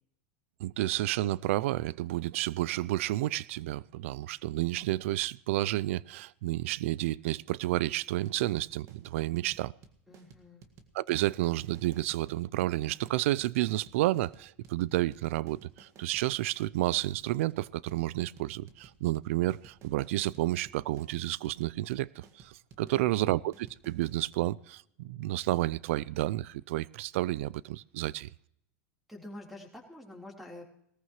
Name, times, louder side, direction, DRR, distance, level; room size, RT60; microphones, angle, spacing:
voice 1, 0.6-9.7 10.9-28.3, right 16 dB, 70° right, 0.4 m, -31 dB
sound 1, 8.2-24.3, right 6 dB, 45° right, 1.8 m, -56 dB
voice 2, 10.1-10.7 22.9-23.4 29.1-30.6, left 1 dB, ahead, 3.8 m, -47 dB
19.0 x 14.5 x 3.1 m
hypercardioid pair, 105°, 7 cm